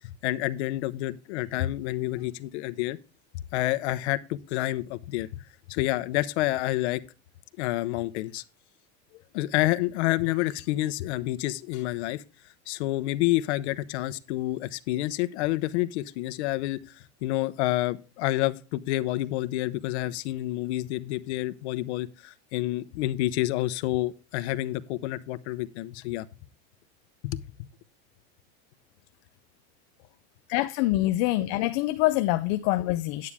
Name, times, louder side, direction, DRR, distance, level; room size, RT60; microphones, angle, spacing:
voice 1, 0.2-3.0 3.5-5.4 5.7-7.0 7.6-8.4 9.3-12.2 12.7-26.3 27.2-27.4, left 16 dB, 85° left, 0.9 m, -28 dB
voice 2, 30.5-33.3, left 17 dB, 40° left, 0.4 m, -25 dB
9.8 x 9.4 x 3.5 m
cardioid pair, 180°, 33 cm